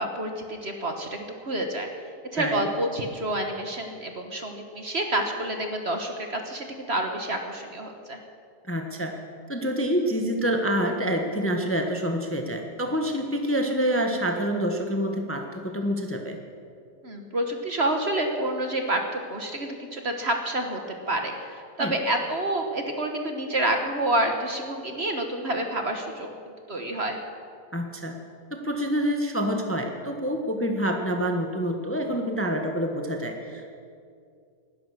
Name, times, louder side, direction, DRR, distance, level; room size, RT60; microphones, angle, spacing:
voice 1, 0.0-1.9 2.3-8.2 17.0-20.8 21.1-26.4 26.7-27.2, right 1 dB, 40° right, 4 dB, 1.4 m, -28 dB
voice 2, 2.4-2.7 8.7-9.1 9.5-16.4 21.8-21.9 27.7-28.1 28.5-33.7, equal, 10° left, 3 dB, 1.1 m, -27 dB
19.5 x 11.5 x 6.5 m, 2.3 s
omnidirectional pair, 1.8 m